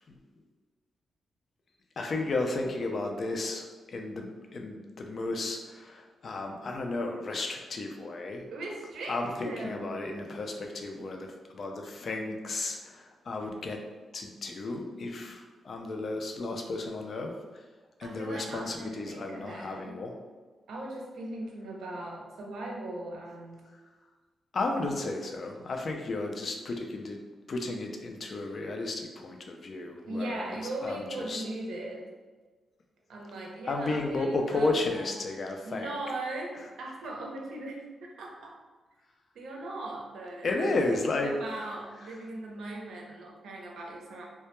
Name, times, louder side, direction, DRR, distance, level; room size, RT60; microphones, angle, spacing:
voice 1, 2.0-8.5 9.1-13.8 14.1-17.3 18.0-20.1 24.5-27.2 27.5-30.4 30.8-31.4 33.7-35.9 40.4-41.3, left 2 dB, 50° left, 3 dB, 0.3 m, -33 dB
voice 2, 8.5-10.0 18.0-20.0 20.7-23.6 30.1-32.1 33.1-35.3 35.6-36.5 36.8-37.8 38.2-38.5 39.3-44.3, right 2 dB, 80° right, -1 dB, 0.5 m, -39 dB
2.2 x 2.1 x 2.9 m, 1.4 s
cardioid pair, 110°, 0 cm